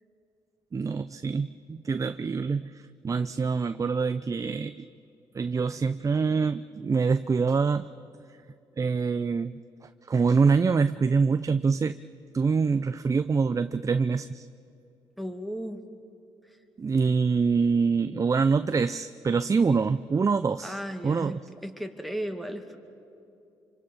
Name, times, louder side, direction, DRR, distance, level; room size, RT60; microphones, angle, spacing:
voice 1, 0.7-2.7 3.0-4.9 5.3-7.9 8.8-9.5 10.1-11.9 12.3-14.5 16.8-21.4, right 5 dB, 30° right, 12 dB, 0.5 m, -25 dB
voice 2, 15.2-15.8 16.5-16.6 20.6-22.8, equal, ahead, 6 dB, 2.3 m, -35 dB
26.0 x 25.5 x 5.4 m, 2.7 s
supercardioid pair, 60°, 10 cm